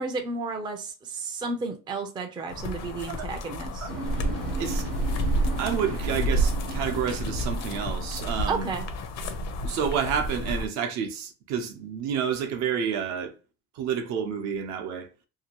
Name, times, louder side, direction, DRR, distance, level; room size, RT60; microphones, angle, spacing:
voice 1, 0.0-3.9 8.5-8.9, right 3 dB, 15° right, 0.4 m, -32 dB
sound 1, 2.5-10.7, right 1 dB, 60° left, 0.7 m, -30 dB
sound 2, 3.9-8.9, right 3 dB, 85° right, 1.0 m, -37 dB
voice 2, 5.6-8.7 9.6-13.3 13.8-15.1, right 7 dB, 65° right, 0.7 m, -29 dB
2.8 x 2.5 x 2.9 m
cardioid pair, 145°, 30 cm